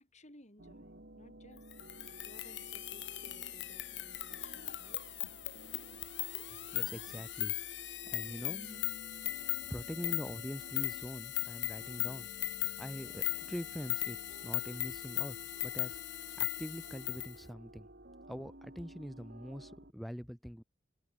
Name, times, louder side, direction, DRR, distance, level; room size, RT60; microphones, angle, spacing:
voice 1, 0.0-1.7 2.2-5.0, left 1 dB, 35° left, 7.6 m, -59 dB
sound 1, 0.6-19.9, right 1 dB, 55° right, 2.9 m, -54 dB
sound 2, 1.7-17.3, left 17 dB, 65° left, 1.1 m, -38 dB
voice 2, 6.5-7.5 8.1-8.8 9.7-12.3 12.8-14.2 14.4-15.4 15.6-16.0 16.4-17.9 18.3-20.6, equal, ahead, 1.9 m, -43 dB
head